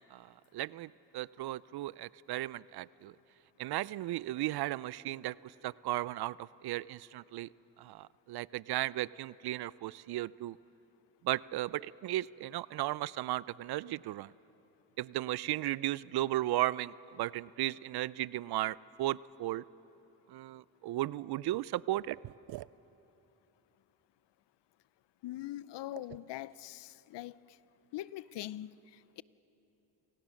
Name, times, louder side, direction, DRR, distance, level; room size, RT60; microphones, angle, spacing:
voice 1, 0.1-3.1 3.6-7.5 7.8-10.6 11.2-14.3 15.0-19.6 20.3-22.7, right 15 dB, 60° right, 21 dB, 0.5 m, -35 dB
voice 2, 25.2-27.6 27.9-29.2, left 14 dB, 70° left, 19 dB, 0.6 m, -43 dB
28.0 x 17.5 x 6.4 m, 3.0 s
supercardioid pair, 65°, 43 cm